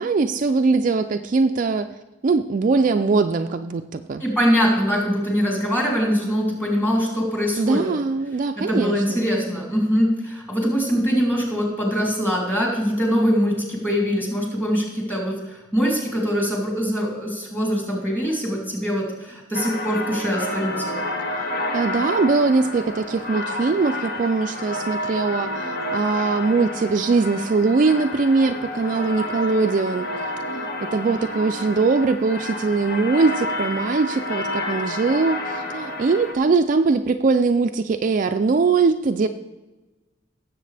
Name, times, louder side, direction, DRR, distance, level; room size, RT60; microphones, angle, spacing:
voice 1, 0.0-1.9 2.2-4.2 7.6-9.3 21.7-30.1 30.5-39.3, right 4 dB, 40° right, 7 dB, 0.3 m, -21 dB
voice 2, 4.2-7.9 8.6-21.0, equal, 10° left, -2 dB, 3.1 m, -23 dB
sound 1, 19.5-36.3, left 1 dB, 50° left, 1.6 m, -30 dB
17.0 x 7.6 x 3.4 m, 1.1 s
head